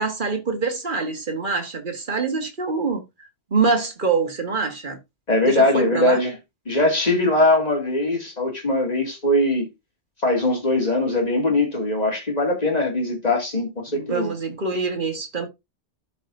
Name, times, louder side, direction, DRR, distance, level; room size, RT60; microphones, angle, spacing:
voice 1, 0.0-3.0 3.5-5.0 5.5-6.2 13.9-15.5, right 4 dB, 50° right, 1.7 m, -25 dB
voice 2, 5.3-6.3 6.7-9.7 10.2-14.3, left 2 dB, 35° left, 2.5 m, -21 dB
12.5 x 4.8 x 2.6 m
omnidirectional pair, 1.1 m